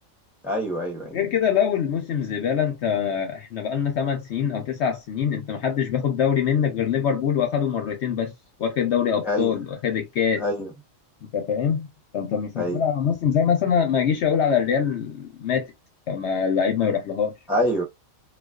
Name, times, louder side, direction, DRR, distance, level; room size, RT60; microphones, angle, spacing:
voice 1, 0.4-1.2 9.2-9.5 10.4-10.7 12.6-12.8 17.5-17.8, equal, ahead, 0.5 m, -25 dB
voice 2, 1.1-8.3 8.6-10.4 11.3-11.9 12.1-15.7 16.1-17.3, left 7 dB, 65° left, 0.7 m, -24 dB
2.3 x 2.3 x 2.3 m
omnidirectional pair, 1.5 m